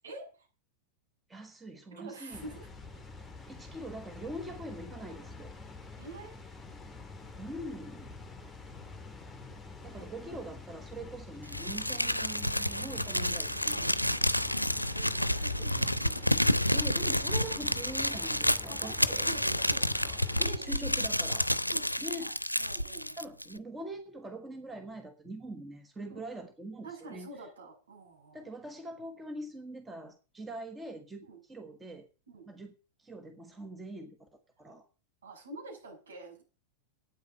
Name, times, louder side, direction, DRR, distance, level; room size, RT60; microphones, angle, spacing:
voice 1, 0.0-0.5 1.9-2.7 6.0-6.3 9.9-10.6 13.6-13.9 14.9-16.4 18.5-20.9 21.7-23.2 26.1-26.2 26.8-28.5 31.3-31.4 32.3-32.4 35.2-36.4, right 3 dB, 70° right, 0 dB, 6.7 m, -47 dB
voice 2, 1.3-2.5 3.5-5.5 7.4-8.1 9.4-9.5 9.8-13.8 16.7-19.3 20.4-21.5 22.0-22.4 23.2-27.3 28.3-32.1 32.4-32.7 33.0-34.9, right 1 dB, 10° right, 6 dB, 1.4 m, -43 dB
Water, 2.3-20.5, left 3 dB, 5° left, 2.1 m, -47 dB
Crumpling crinkling, 11.5-23.6, left 1 dB, 90° left, 0.5 m, -30 dB
9.1 x 8.1 x 8.8 m, 0.35 s
figure-of-eight pair, 90°, 0 cm